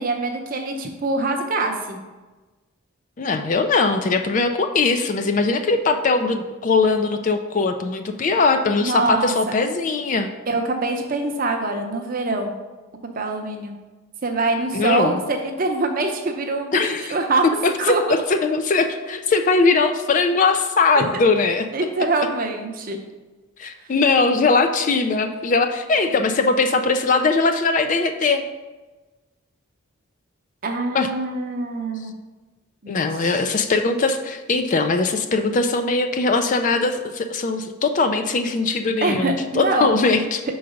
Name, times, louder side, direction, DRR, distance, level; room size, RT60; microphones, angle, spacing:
voice 1, 0.0-2.0 8.8-9.5 10.5-12.5 13.2-13.7 14.2-17.4 17.8-18.0 20.9-21.0 21.7-23.0 30.6-32.1 32.8-33.4 39.0-39.9, right 2 dB, 40° right, 3 dB, 0.7 m, -24 dB
voice 2, 3.2-10.3 14.7-15.2 16.7-17.2 17.6-18.0 18.3-21.7 23.6-28.4 30.9-31.1 32.9-40.4, left 3 dB, 35° left, 7 dB, 0.3 m, -20 dB
5.6 x 4.0 x 5.0 m, 1.2 s
head